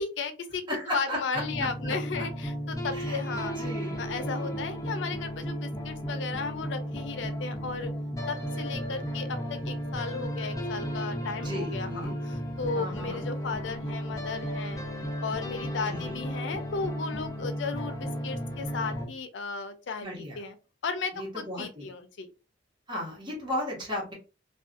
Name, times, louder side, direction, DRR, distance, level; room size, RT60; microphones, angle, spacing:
voice 1, 0.0-0.6 0.9-3.6 4.0-7.9 8.3-14.8 15.2-20.1 20.4-20.6 20.8-22.3, left 4 dB, 80° left, 9 dB, 0.5 m, -35 dB
voice 2, 0.7-1.4 1.8-1.9 2.9-3.2 3.5-4.0 11.4-12.2 12.7-13.2 15.9-16.2 20.0-20.4 21.1-21.9 22.9-24.1, left 1 dB, 25° right, -3 dB, 1.2 m, -35 dB
sound 1, 1.3-19.1, equal, 20° left, 0.6 m, -34 dB
2.5 x 2.3 x 2.5 m, 0.32 s
head